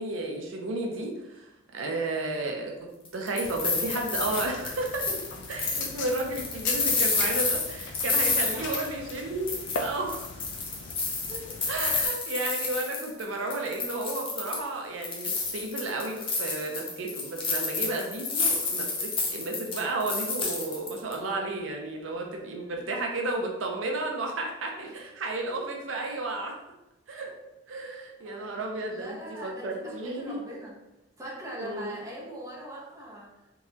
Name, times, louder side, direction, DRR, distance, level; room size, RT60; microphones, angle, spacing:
voice 1, 0.0-5.2 5.5-10.3 11.7-26.6 27.1-27.3 27.7-30.4 31.6-31.9, right 2 dB, 85° right, 2 dB, 0.5 m, -33 dB
sound 1, 3.1-9.2 9.5-13.2 13.5-14.7 15.0-21.1, left 4 dB, 30° left, 0.7 m, -30 dB
sound 2, 3.4-12.1, left 4 dB, 65° left, 0.4 m, -40 dB
voice 2, 8.3-8.7 11.3-11.6 22.6-22.8 24.8-24.9 28.2-28.6 28.9-30.8 31.2-33.3, equal, 20° right, -6 dB, 1.0 m, -42 dB
3.7 x 2.8 x 2.9 m, 0.95 s
head